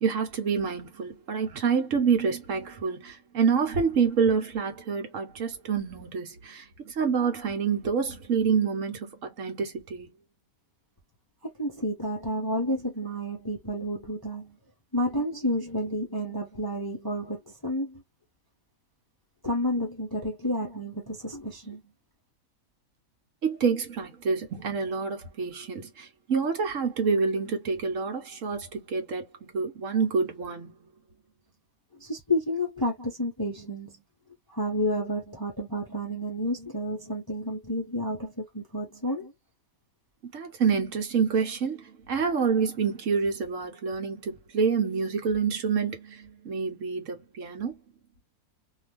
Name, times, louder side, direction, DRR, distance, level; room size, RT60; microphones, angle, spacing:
voice 1, 0.0-10.1 23.4-29.3 29.5-30.7 40.3-47.7, right 5 dB, 60° right, 1.2 m, -27 dB
voice 2, 11.6-14.6 14.9-18.0 19.4-21.8 32.0-34.0 34.5-39.3, left 1 dB, 20° left, 0.6 m, -30 dB
2.7 x 2.4 x 3.3 m
omnidirectional pair, 1.6 m